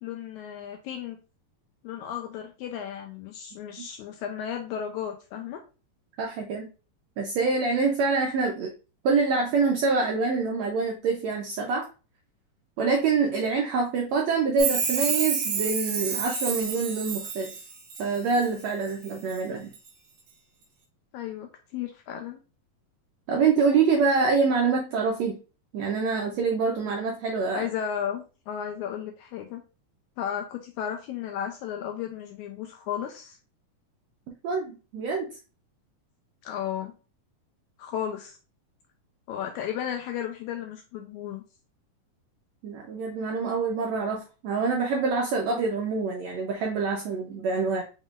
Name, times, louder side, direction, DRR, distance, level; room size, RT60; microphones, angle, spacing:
voice 1, 0.0-1.2 1.8-5.6 21.1-22.4 27.5-29.6 30.2-33.4 36.4-36.9 37.8-38.4 39.3-41.4, left 9 dB, 80° left, 4 dB, 1.7 m, -34 dB
voice 2, 6.2-6.7 7.2-8.7 9.0-11.9 12.8-17.5 18.0-19.7 23.3-25.4 25.7-27.7 34.4-35.3 42.6-47.8, right 4 dB, 80° right, 1 dB, 1.5 m, -25 dB
Chime, 14.6-18.5 18.9-19.4 19.7-19.8, right 6 dB, 65° right, 2.4 m, -29 dB
5.3 x 3.6 x 2.4 m, 0.33 s
omnidirectional pair, 3.8 m